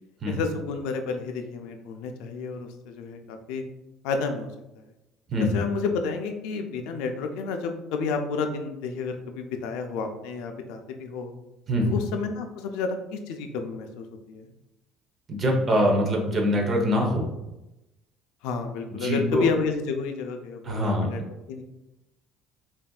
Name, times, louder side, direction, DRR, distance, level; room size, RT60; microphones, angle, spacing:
voice 1, 0.3-3.6 4.0-4.5 4.8-4.9 5.4-11.3 11.9-14.5 18.4-21.2 21.5-21.6, left 4 dB, 85° left, 5 dB, 0.4 m, -31 dB
voice 2, 15.3-17.3 19.0-19.5 20.6-21.1, equal, 30° right, 1 dB, 0.8 m, -23 dB
5.5 x 2.6 x 2.3 m, 0.96 s
cardioid pair, 150°, 0 cm